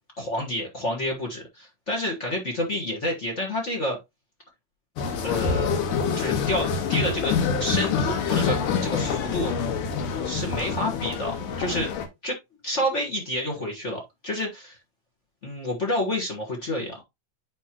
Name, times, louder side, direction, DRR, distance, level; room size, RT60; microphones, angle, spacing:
voice 1, 0.2-4.0 5.2-5.8 6.1-9.5 10.2-11.9 12.2-12.4 12.6-14.8 15.4-17.0, left 1 dB, 50° left, 1 dB, 0.8 m, -29 dB
sound 1, 5.0-12.1, left 6 dB, 85° left, 2.8 m, -26 dB
10.5 x 3.8 x 2.9 m, 0.20 s
omnidirectional pair, 3.7 m